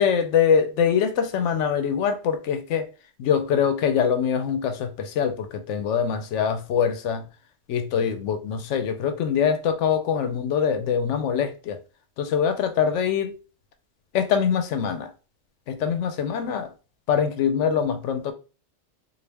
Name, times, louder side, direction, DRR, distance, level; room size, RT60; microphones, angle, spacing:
voice 1, 0.0-2.9 3.2-7.3 7.7-11.8 12.2-13.3 14.1-15.1 15.7-16.7 17.1-18.3, left 7 dB, 90° left, 0.9 m, -23 dB
3.9 x 2.4 x 3.3 m
omnidirectional pair, 1.2 m